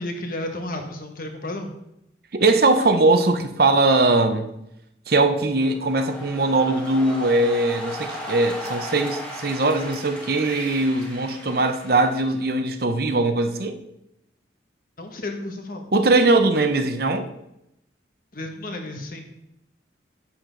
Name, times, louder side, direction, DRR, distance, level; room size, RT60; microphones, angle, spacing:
voice 1, 0.0-1.7 15.0-15.9 18.3-19.3, left 1 dB, 50° left, 4 dB, 1.2 m, -32 dB
voice 2, 2.3-4.5 5.1-13.8 15.9-17.3, right 2 dB, 55° right, 7 dB, 0.8 m, -20 dB
sound 1, 5.6-12.5, equal, 5° left, 1.7 m, -36 dB
8.3 x 7.4 x 3.9 m, 0.83 s
head